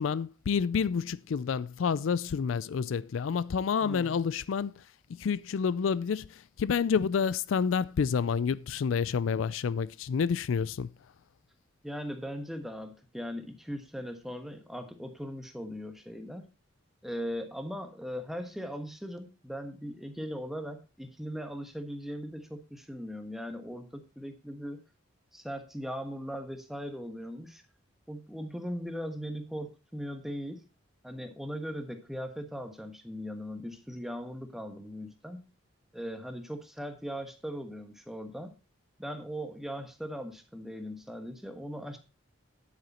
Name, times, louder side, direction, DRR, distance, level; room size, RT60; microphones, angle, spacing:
voice 1, 0.0-4.7 5.1-6.3 6.6-10.9, left 6 dB, 80° left, 0.4 m, -29 dB
voice 2, 3.8-4.2 11.8-16.5 17.0-24.8 25.3-27.6 28.1-30.6 31.0-35.4 35.9-38.5 39.0-42.0, equal, ahead, 1.3 m, -39 dB
9.8 x 7.9 x 4.2 m
head